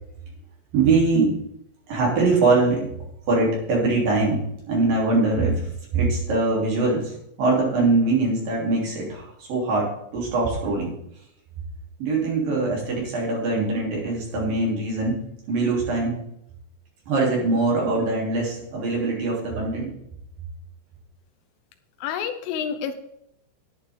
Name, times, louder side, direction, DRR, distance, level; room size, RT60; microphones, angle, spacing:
voice 1, 0.7-1.4 1.9-2.9 3.3-10.9 12.0-16.2 17.1-19.9, right 3 dB, 50° right, -3 dB, 4.6 m, -22 dB
voice 2, 22.0-22.9, left 7 dB, 80° left, 7 dB, 3.4 m, -28 dB
11.5 x 10.5 x 3.7 m, 0.76 s
omnidirectional pair, 5.8 m